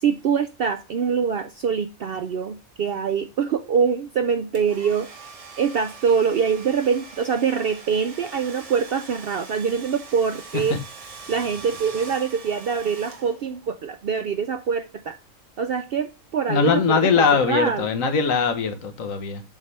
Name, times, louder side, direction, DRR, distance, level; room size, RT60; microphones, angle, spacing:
voice 1, 0.0-5.1 5.6-10.8 11.3-15.1 15.6-17.9, right 6 dB, 65° right, 0.6 m, -24 dB
Domestic sounds home sounds, 4.5-13.7, right 4 dB, 30° right, 0.9 m, -42 dB
voice 2, 16.5-19.4, left 6 dB, 70° left, 1.4 m, -21 dB
7.1 x 3.3 x 5.5 m
omnidirectional pair, 1.5 m